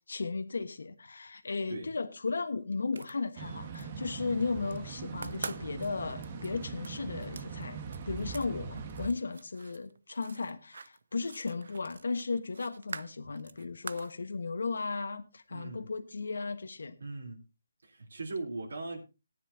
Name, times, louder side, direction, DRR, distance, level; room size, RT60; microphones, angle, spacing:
voice 1, 0.1-17.0, left 4 dB, 80° left, 1.3 m, -35 dB
sound 1, 2.8-3.8 4.2-4.8 5.1-8.5 8.8-14.1, right 4 dB, 70° right, 0.6 m, -46 dB
sound 2, 3.4-9.1, right 5 dB, 35° right, 1.4 m, -41 dB
voice 2, 15.5-15.9 17.0-17.4 17.8-19.0, right 3 dB, 85° right, 3.5 m, -39 dB
18.5 x 10.0 x 2.8 m
hypercardioid pair, 165°, 0 cm